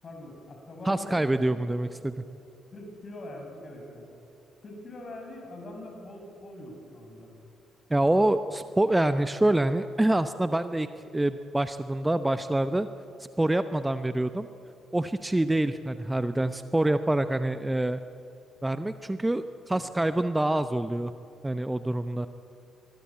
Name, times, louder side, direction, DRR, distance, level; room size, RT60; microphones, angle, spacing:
voice 1, 0.0-1.9 2.7-4.1 4.6-7.3 19.7-19.8, left 1 dB, 40° left, 2 dB, 7.3 m, -43 dB
voice 2, 0.8-2.1 7.9-10.9 11.1-12.9 13.4-14.5 14.9-18.0 18.6-21.1 21.4-22.3, right 1 dB, 10° right, 11 dB, 0.9 m, -26 dB
24.0 x 22.5 x 8.7 m, 2.7 s
figure-of-eight pair, 45°, 0 cm